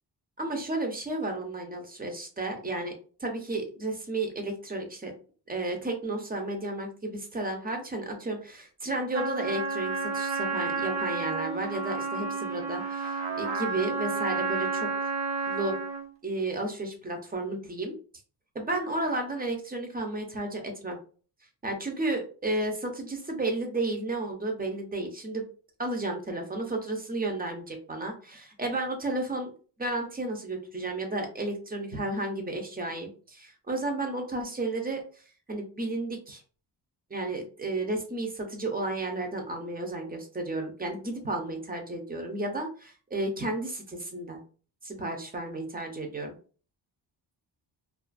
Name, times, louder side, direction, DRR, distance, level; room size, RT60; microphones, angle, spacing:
voice 1, 0.4-2.9 3.2-5.1 5.5-15.1 15.5-15.8 16.2-17.9 18.5-21.0 21.6-25.5 25.8-29.5 29.8-36.4 37.1-44.4 44.8-46.4, right 2 dB, 20° right, 3 dB, 0.6 m, -32 dB
Trumpet, 9.1-16.1, right 4 dB, 75° right, 0.9 m, -31 dB
2.4 x 2.4 x 2.4 m, 0.39 s
wide cardioid pair, 130°, 45 cm